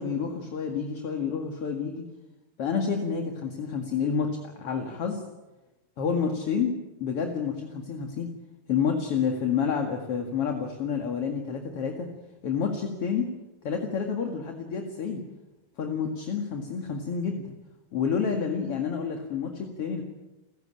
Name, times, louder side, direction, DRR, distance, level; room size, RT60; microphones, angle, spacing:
voice 1, 0.0-2.0 2.6-4.3 4.6-5.2 6.0-8.3 8.7-12.1 12.4-13.3 13.6-15.2 15.8-17.5 17.9-20.0, left 6 dB, 45° left, 3 dB, 2.4 m, -29 dB
30.0 x 16.0 x 8.9 m, 1.1 s
omnidirectional pair, 4.5 m